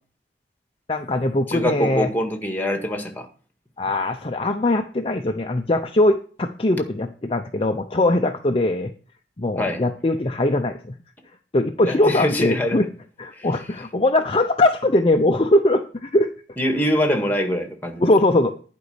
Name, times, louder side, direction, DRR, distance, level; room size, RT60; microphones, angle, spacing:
voice 1, 0.9-2.1 3.8-8.9 9.4-10.9 11.5-12.9 13.2-16.3 18.0-18.5, left 1 dB, 30° left, 0.6 m, -21 dB
voice 2, 1.5-3.3 9.6-9.8 11.9-12.9 13.3-13.5 16.6-18.0, equal, 10° left, 1.9 m, -24 dB
11.5 x 5.3 x 8.0 m
head